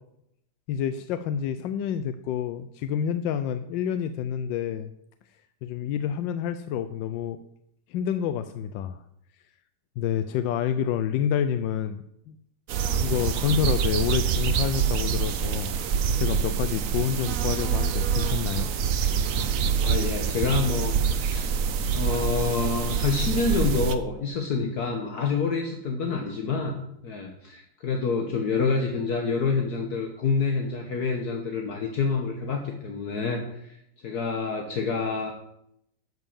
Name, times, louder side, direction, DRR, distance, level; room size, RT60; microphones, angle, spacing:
voice 1, 0.7-4.9 5.6-7.4 7.9-9.0 10.0-12.4 13.0-18.7, left 9 dB, 85° left, 10 dB, 1.3 m, -28 dB
sound 1, 12.7-23.9, right 7 dB, 60° right, 0.9 m, -26 dB
voice 2, 19.8-21.4 21.9-26.8 27.0-33.8 34.0-35.3, left 4 dB, 60° left, 3 dB, 1.5 m, -27 dB
12.0 x 5.5 x 7.1 m, 0.76 s
omnidirectional pair, 2.0 m